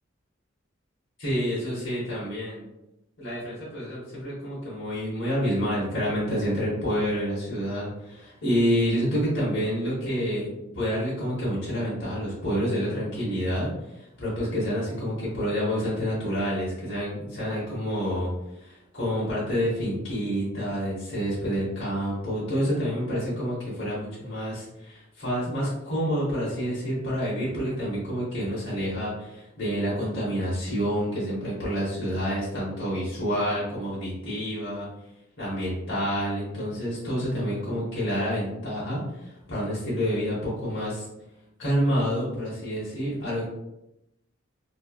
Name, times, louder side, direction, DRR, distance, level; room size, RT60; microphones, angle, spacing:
voice 1, 1.2-2.6 3.2-10.5 10.7-18.3 18.6-34.9 35.4-41.1 41.6-43.5, equal, 60° left, -8 dB, 1.0 m, -28 dB
3.1 x 2.3 x 2.3 m, 0.88 s
head